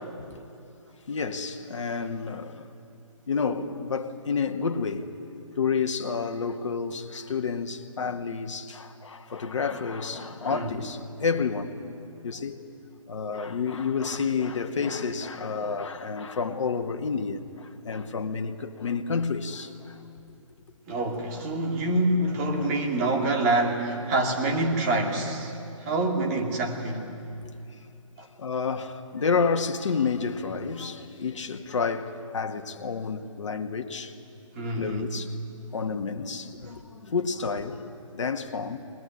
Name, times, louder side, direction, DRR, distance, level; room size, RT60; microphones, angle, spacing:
voice 1, 1.1-2.6 3.3-5.1 5.5-11.9 12.2-12.6 13.1-20.0 22.6-22.7 27.4-27.5 28.4-34.1 34.8-35.3 35.7-38.8, left 5 dB, 65° left, 1.7 m, -30 dB
voice 2, 20.9-25.5 25.8-27.1 28.2-28.3 34.5-35.1, right 2 dB, 30° right, 2.8 m, -26 dB
21.0 x 20.5 x 9.7 m
figure-of-eight pair, 145°, 17 cm